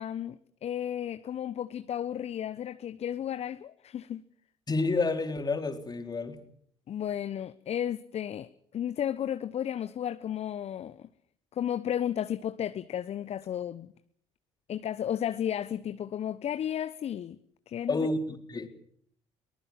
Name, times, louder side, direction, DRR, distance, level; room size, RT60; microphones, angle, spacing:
voice 1, 0.0-4.2 6.9-11.1 11.5-13.9 14.7-17.4 17.7-18.1, left 10 dB, 45° left, 1.0 m, -33 dB
voice 2, 4.7-6.4 17.9-18.7, left 3 dB, 25° left, 4.2 m, -29 dB
23.0 x 19.5 x 7.5 m
figure-of-eight pair, 55°, 15 cm